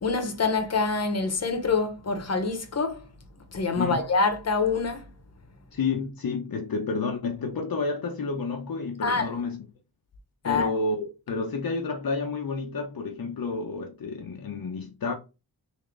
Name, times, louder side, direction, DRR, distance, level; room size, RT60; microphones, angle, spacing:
voice 1, 0.0-3.1 3.5-5.1 9.0-9.3 10.4-10.7, left 4 dB, 40° left, 1.0 m, -26 dB
voice 2, 5.7-9.6 10.4-15.1, left 4 dB, 65° left, 0.8 m, -30 dB
3.8 x 2.8 x 3.2 m
wide cardioid pair, 75°, 39 cm